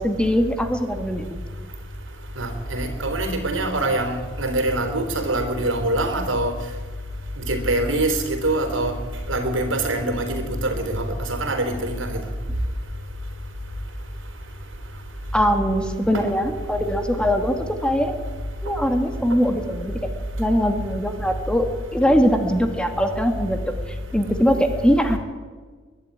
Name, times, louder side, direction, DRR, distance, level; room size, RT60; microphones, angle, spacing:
voice 1, 0.0-1.4 15.3-18.2 18.6-20.0 20.4-21.7 21.9-23.7 24.1-25.2, equal, 5° left, 6 dB, 1.8 m, -21 dB
voice 2, 2.4-6.5 7.4-8.9 9.3-12.2 16.1-16.2, right 1 dB, 85° right, 6 dB, 3.8 m, -24 dB
22.5 x 11.5 x 9.9 m, 1.5 s
head